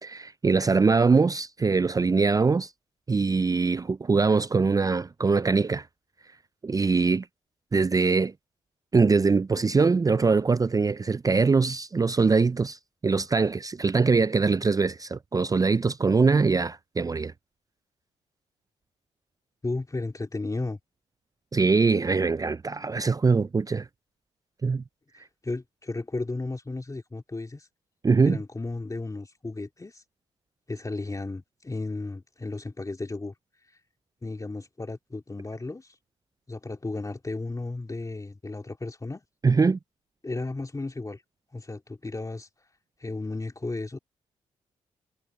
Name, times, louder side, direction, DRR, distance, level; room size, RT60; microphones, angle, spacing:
voice 1, 0.0-2.7 3.1-5.9 6.6-7.3 7.7-8.3 8.9-17.3 21.5-23.9 24.6-24.8 28.0-28.4 39.4-39.8, right 4 dB, 25° right, 0.5 m, -22 dB
voice 2, 19.6-20.8 25.2-27.7 28.2-30.0 30.7-33.3 33.7-33.8 34.2-36.0 36.5-39.2 40.2-41.2 41.5-42.5 43.0-44.0, left 2 dB, 25° left, 2.6 m, -34 dB
supercardioid pair, 50°, 14 cm